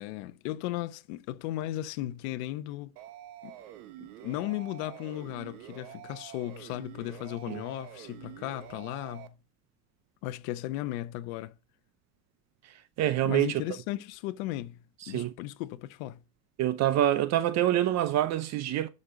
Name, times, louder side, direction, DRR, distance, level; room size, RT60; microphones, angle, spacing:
voice 1, 0.0-2.9 3.4-3.6 4.0-9.3 10.2-11.5 13.2-16.2, left 15 dB, 65° left, 0.9 m, -36 dB
sound 1, 3.0-9.3, right 12 dB, 85° right, 1.3 m, -47 dB
voice 2, 12.6-13.6 15.0-15.3 16.6-18.9, right 12 dB, 35° right, 0.6 m, -26 dB
11.0 x 5.4 x 3.9 m
supercardioid pair, 140°, 45 cm